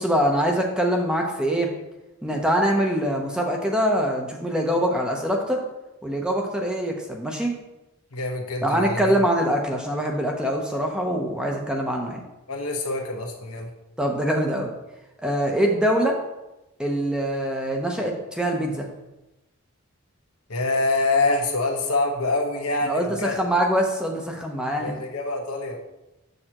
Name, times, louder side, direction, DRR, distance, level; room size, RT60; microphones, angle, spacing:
voice 1, 0.0-1.7 2.2-5.6 6.0-7.5 8.6-12.2 14.0-14.7 15.2-16.2 16.8-18.9 22.9-24.9, equal, 5° right, 1 dB, 0.7 m, -24 dB
voice 2, 8.1-9.2 12.5-13.7 20.5-23.4 24.8-25.8, left 2 dB, 85° left, 1 dB, 1.2 m, -25 dB
7.5 x 6.6 x 2.9 m, 0.98 s
head